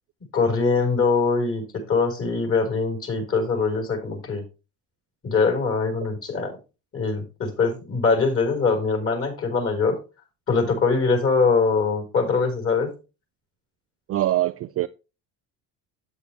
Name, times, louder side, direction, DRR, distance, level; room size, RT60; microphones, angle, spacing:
voice 1, 0.3-4.4 5.2-6.6 6.9-10.0 10.5-12.9, left 4 dB, 35° left, 4.6 m, -22 dB
voice 2, 14.1-14.9, right 14 dB, 35° right, 0.4 m, -23 dB
8.5 x 8.2 x 3.4 m
supercardioid pair, 80°, 40 cm